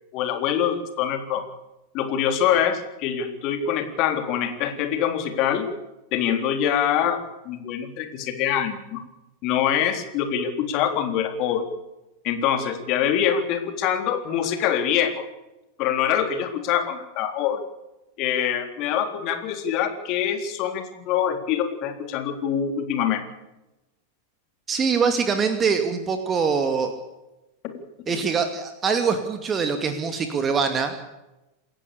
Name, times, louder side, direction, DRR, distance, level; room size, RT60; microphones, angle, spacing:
voice 1, 0.1-1.4 1.9-5.7 6.1-9.0 9.4-11.6 12.2-15.2 15.8-17.6 18.2-23.2, left 9 dB, 40° left, 6 dB, 3.7 m, -24 dB
voice 2, 24.7-26.9 28.1-31.0, right 5 dB, 20° right, 7 dB, 2.4 m, -23 dB
28.5 x 15.0 x 6.9 m, 0.97 s
figure-of-eight pair, 90°, 0 cm